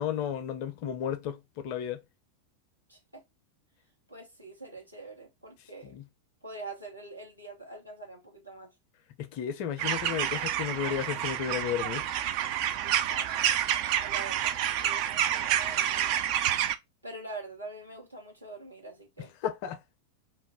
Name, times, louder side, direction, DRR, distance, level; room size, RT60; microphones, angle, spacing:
voice 1, 0.0-2.0 5.8-6.1 9.2-12.1 19.2-19.8, left 9 dB, 45° left, 0.5 m, -33 dB
voice 2, 2.9-3.2 4.1-6.0 6.4-8.7 12.9-13.5 14.0-16.2 17.0-19.4, right 2 dB, 85° right, 1.0 m, -45 dB
sound 1, 9.8-16.7, right 11 dB, 45° right, 0.3 m, -28 dB
2.4 x 2.1 x 3.5 m
figure-of-eight pair, 90°, 0 cm